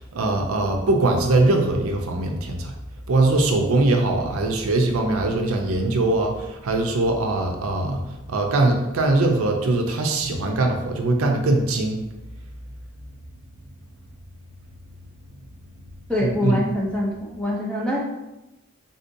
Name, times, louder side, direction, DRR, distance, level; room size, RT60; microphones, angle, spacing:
voice 1, 0.0-2.7 3.1-8.0 8.3-12.0 16.2-16.6, right 2 dB, 80° right, 3 dB, 0.5 m, -21 dB
voice 2, 16.1-18.0, left 1 dB, 5° left, -4 dB, 0.5 m, -24 dB
3.6 x 2.7 x 2.6 m, 0.98 s
head